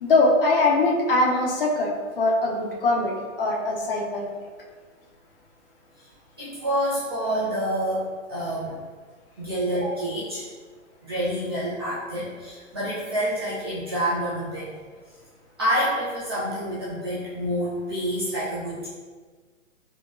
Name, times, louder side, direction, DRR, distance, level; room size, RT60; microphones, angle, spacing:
voice 1, 0.0-4.3, left 2 dB, 45° left, -1 dB, 0.6 m, -22 dB
voice 2, 6.4-8.8 9.4-10.4 11.0-14.7 15.6-18.9, equal, 20° right, -10 dB, 0.4 m, -27 dB
3.7 x 2.1 x 2.4 m, 1.5 s
hypercardioid pair, 150°, 38 cm